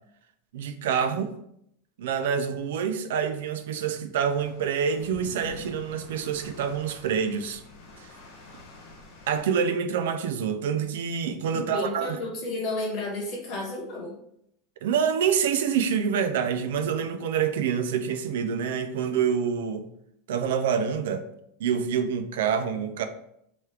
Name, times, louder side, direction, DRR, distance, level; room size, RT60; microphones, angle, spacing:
voice 1, 0.5-1.4 2.0-7.6 8.0-8.1 9.3-12.2 14.8-19.9 20.3-21.3 21.6-23.1, right 7 dB, 80° right, 0.3 m, -27 dB
sound 1, 4.3-9.4, left 3 dB, 70° left, 1.3 m, -46 dB
voice 2, 11.5-14.2, left 2 dB, 35° left, 1.0 m, -32 dB
3.0 x 2.3 x 3.2 m
supercardioid pair, 170°, 0 cm